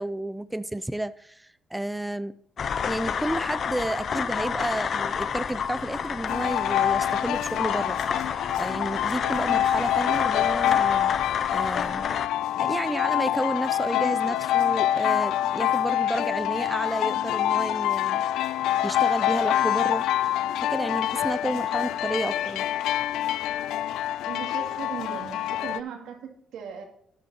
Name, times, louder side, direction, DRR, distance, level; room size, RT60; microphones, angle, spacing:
voice 1, 0.0-8.0 8.6-11.2 11.5-12.1 12.6-18.6 18.8-20.1 20.6-22.7, right 1 dB, 5° right, 0.4 m, -31 dB
sound 1, 2.6-12.3, left 6 dB, 55° left, 0.6 m, -30 dB
sound 2, 6.3-25.8, left 12 dB, 85° left, 0.3 m, -26 dB
voice 2, 9.1-9.6 21.9-22.0 24.2-26.8, right 7 dB, 85° right, 2.3 m, -38 dB
13.0 x 9.8 x 2.8 m
cardioid pair, 90°, 0 cm